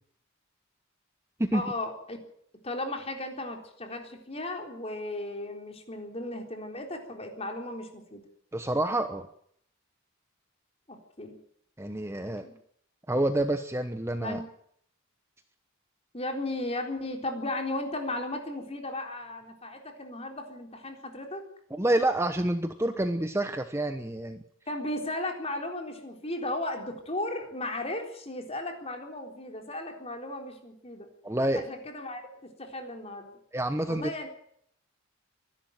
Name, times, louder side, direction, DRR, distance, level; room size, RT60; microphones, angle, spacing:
voice 1, 1.5-2.2 2.6-8.2 10.9-11.4 12.4-12.5 14.2-14.4 16.1-21.4 24.7-31.1 31.5-33.3 33.9-34.3, left 1 dB, 30° left, 3 dB, 3.9 m, -35 dB
voice 2, 8.5-9.3 11.8-12.4 13.1-14.4 21.7-24.4 31.2-31.6 33.5-34.1, right 1 dB, 15° right, 8 dB, 1.0 m, -28 dB
24.0 x 12.0 x 9.3 m, 0.68 s
head